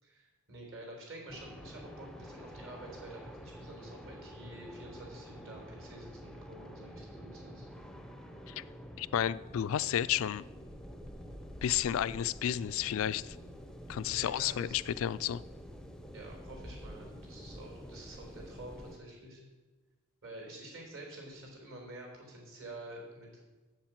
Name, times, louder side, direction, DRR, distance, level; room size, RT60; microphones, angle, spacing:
voice 1, 0.0-7.7 14.1-14.8 16.1-19.4 20.2-23.3, right 1 dB, 60° right, -1 dB, 3.9 m, -48 dB
sound 1, 1.3-19.0, equal, 5° left, 0.5 m, -48 dB
voice 2, 9.0-10.4 11.6-13.4 13.9-15.4, left 10 dB, 65° left, 17 dB, 0.3 m, -32 dB
8.1 x 7.2 x 7.4 m, 1.2 s
head